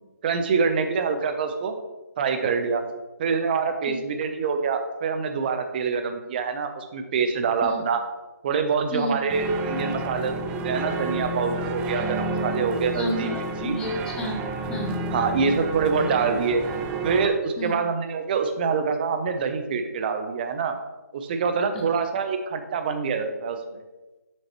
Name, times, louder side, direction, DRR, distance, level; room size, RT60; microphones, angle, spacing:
voice 1, 0.2-1.7 2.2-2.8 3.2-8.0 8.4-10.4 10.6-13.4 13.6-13.8 15.1-16.6 17.0-20.7 21.1-23.6, right 5 dB, 35° right, 7 dB, 0.8 m, -25 dB
sound 1, 9.3-17.3, right 2 dB, 10° right, 0.3 m, -30 dB
voice 2, 12.9-15.0 17.6-17.8, left 1 dB, 10° left, 1 dB, 0.8 m, -31 dB
7.7 x 6.3 x 3.0 m, 1.1 s
figure-of-eight pair, 150°, 9 cm